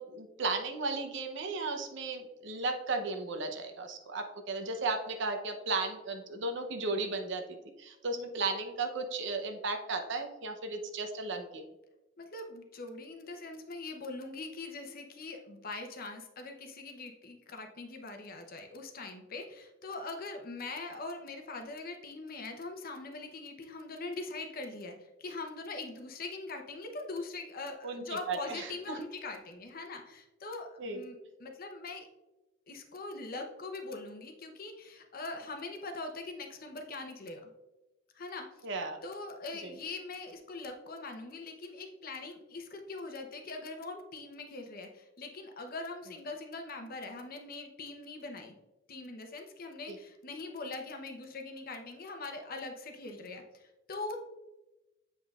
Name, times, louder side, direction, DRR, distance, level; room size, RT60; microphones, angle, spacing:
voice 1, 0.0-11.6 27.8-29.0 30.8-31.0 38.6-39.0 39.6-39.7 49.9-50.0, right 3 dB, 65° right, 6 dB, 0.8 m, -35 dB
voice 2, 12.2-32.1 32.7-37.5 38.1-38.4 39.0-48.6 48.9-54.2, left 3 dB, 50° left, 4 dB, 0.8 m, -42 dB
7.7 x 5.2 x 2.4 m, 1.0 s
head